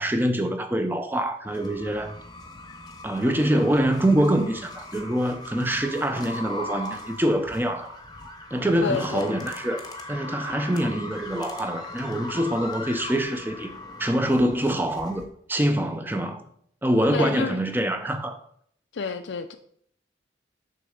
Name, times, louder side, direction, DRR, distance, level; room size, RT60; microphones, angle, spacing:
voice 1, 0.0-2.1 3.0-8.0 8.5-9.8 10.1-13.7 14.0-15.2 15.5-16.4 16.8-18.4, right 1 dB, 10° right, 0.6 m, -25 dB
sound 1, 1.5-15.2, left 2 dB, 20° left, 0.9 m, -39 dB
voice 2, 8.8-9.4 17.1-17.6 18.9-19.6, left 4 dB, 75° left, 0.5 m, -29 dB
6.6 x 3.9 x 6.4 m
head